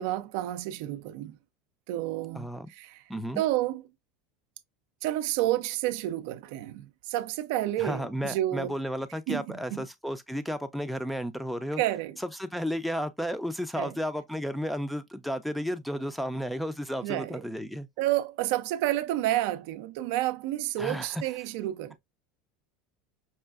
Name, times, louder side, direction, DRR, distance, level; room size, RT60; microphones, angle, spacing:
voice 1, 0.0-1.4 1.9-3.0 3.4-3.8 5.0-8.8 9.3-9.4 9.7-9.9 11.8-12.1 13.8-13.9 17.0-17.4 18.0-22.0, right 14 dB, 70° right, 0.4 m, -30 dB
voice 2, 2.3-2.7 3.1-3.4 7.8-11.8 12.2-17.9 20.8-21.2, equal, ahead, 0.5 m, -33 dB
5.4 x 2.4 x 2.3 m
supercardioid pair, 125°, 0 cm